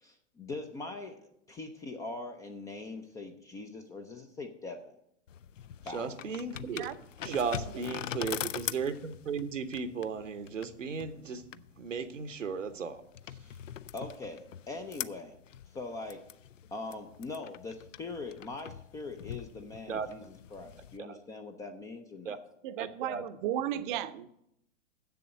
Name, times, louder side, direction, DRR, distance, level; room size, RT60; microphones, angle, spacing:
voice 1, 0.0-4.9 5.8-6.1 13.4-13.6 13.9-15.4 15.7-16.3 16.7-22.4, left 3 dB, 10° left, 0.3 m, -42 dB
sound 1, 5.3-21.0, left 10 dB, 80° left, 0.5 m, -43 dB
voice 2, 5.9-6.9 7.2-11.4 11.8-13.0 19.9-20.1 21.0-21.2 22.2-22.4 22.8-23.2 23.9-24.0, right 5 dB, 80° right, 1.0 m, -35 dB
voice 3, 7.2-7.8 22.6-24.3, right 11 dB, 40° right, 0.7 m, -35 dB
7.6 x 7.0 x 7.5 m
figure-of-eight pair, 105°, 37 cm